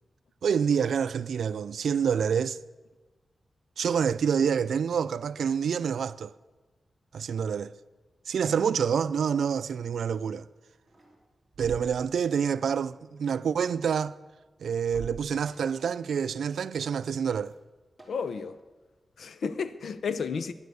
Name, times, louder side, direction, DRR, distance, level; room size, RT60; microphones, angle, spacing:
voice 1, 0.4-2.6 3.8-6.3 7.1-7.7 8.3-10.5 11.6-14.2 14.6-17.5, right 7 dB, 80° right, 0.4 m, -27 dB
sound 1, 10.8-11.2 11.9-13.8 15.3-16.5 17.0-17.1 17.5-17.6 18.0-18.6, right 1 dB, 5° left, 3.3 m, -58 dB
Thump thud, 11.5-12.2 14.9-15.4, right 6 dB, 65° right, 0.9 m, -42 dB
voice 2, 18.1-18.6 19.2-20.5, left 5 dB, 70° left, 0.7 m, -32 dB
14.5 x 10.5 x 6.9 m
wide cardioid pair, 145°, 0 cm